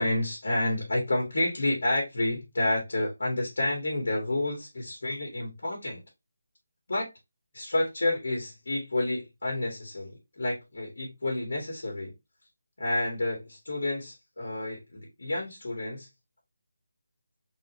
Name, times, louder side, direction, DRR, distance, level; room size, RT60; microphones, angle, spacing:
voice 1, 0.0-6.0 6.9-7.1 7.5-12.1 12.8-16.1, left 1 dB, 55° left, 1.9 m, -29 dB
4.0 x 3.3 x 3.0 m
figure-of-eight pair, 180°, 0 cm